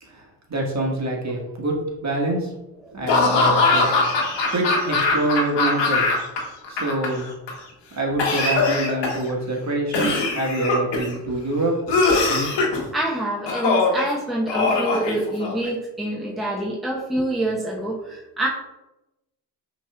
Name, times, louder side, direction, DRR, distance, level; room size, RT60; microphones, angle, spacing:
voice 1, 0.5-2.5 2.9-3.9 4.5-6.0 6.7-7.3 7.9-12.0, right 2 dB, 35° right, -1 dB, 1.5 m, -25 dB
Laughter / Cough, 3.1-6.4 6.6-7.5 8.2-9.3 9.9-11.1 11.9-12.8 13.5-14.0 14.5-15.7, left 3 dB, 60° left, 1.2 m, -21 dB
voice 2, 12.9-18.5, right 1 dB, ahead, -4 dB, 0.9 m, -26 dB
5.7 x 3.2 x 2.3 m, 0.96 s
hypercardioid pair, 50°, 48 cm